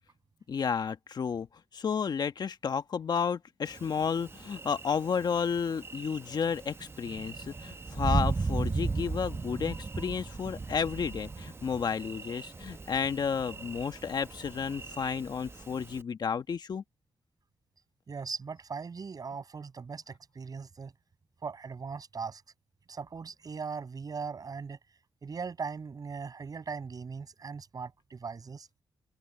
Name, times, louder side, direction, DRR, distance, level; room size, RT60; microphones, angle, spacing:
voice 1, 0.5-1.5 1.7-16.8, left 6 dB, 60° left, 1.6 m, -32 dB
Thunder, 3.7-16.0, right 3 dB, 30° right, 0.9 m, -37 dB
voice 2, 18.1-20.9 21.4-22.4 22.9-24.8 25.2-28.7, right 5 dB, 50° right, 6.8 m, -39 dB
open air
cardioid pair, 65°, 8 cm